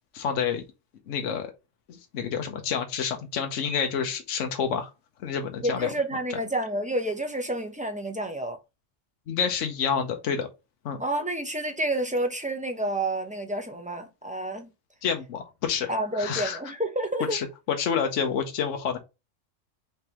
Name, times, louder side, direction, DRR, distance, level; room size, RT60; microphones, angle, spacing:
voice 1, 0.1-0.6 1.1-1.5 1.9-4.9 5.2-5.9 9.3-10.5 10.8-11.0 15.0-16.6 17.3-19.0, left 7 dB, 70° left, 1.1 m, -28 dB
voice 2, 5.6-8.6 11.0-14.7 15.9-17.4, right 1 dB, 10° right, 0.6 m, -29 dB
5.2 x 3.4 x 2.9 m
omnidirectional pair, 1.3 m